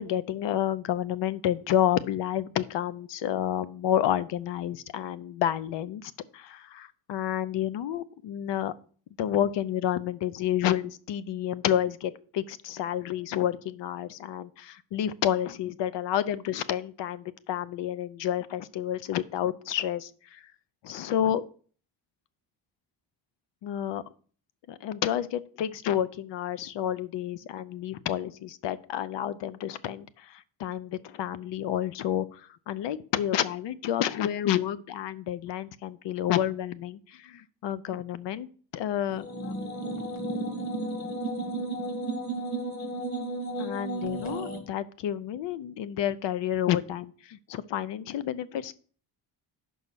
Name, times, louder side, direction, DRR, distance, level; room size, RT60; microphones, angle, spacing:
voice 1, 0.0-8.7 9.2-20.5 20.8-21.4 23.6-24.0 24.7-38.5 38.7-39.5 43.6-48.7, left 11 dB, 80° left, 16 dB, 0.6 m, -30 dB
sound 1, 39.1-44.6, right 2 dB, 40° left, 1.8 m, -33 dB
5.5 x 5.4 x 6.2 m, 0.43 s
cardioid pair, 145°, 42 cm